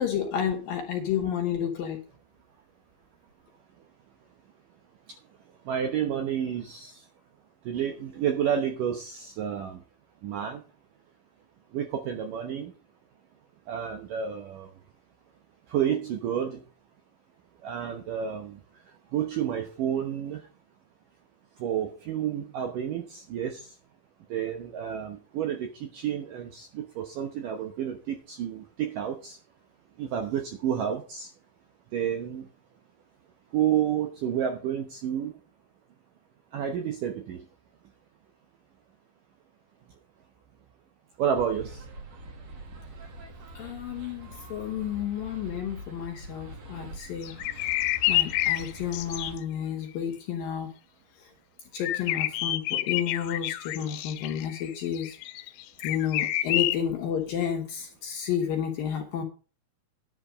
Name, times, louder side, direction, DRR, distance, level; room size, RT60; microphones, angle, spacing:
voice 1, 0.0-2.0 43.5-47.8 48.1-50.7 51.7-55.2 55.8-59.2, left 8 dB, 65° left, 2.7 m, -31 dB
voice 2, 5.7-7.0 7.7-9.8 10.2-10.6 11.7-12.7 13.7-14.7 15.7-16.6 17.6-18.6 19.1-20.4 21.6-23.7 24.3-29.4 30.0-31.3 31.9-32.5 33.5-35.3 36.5-37.4 41.2-41.8, right 9 dB, 75° right, 2.0 m, -30 dB
sound 1, 41.3-49.4, right 1 dB, 50° right, 2.2 m, -44 dB
sound 2, 47.2-49.4 51.8-56.8, left 15 dB, 85° left, 2.9 m, -28 dB
10.5 x 8.6 x 5.1 m
omnidirectional pair, 5.2 m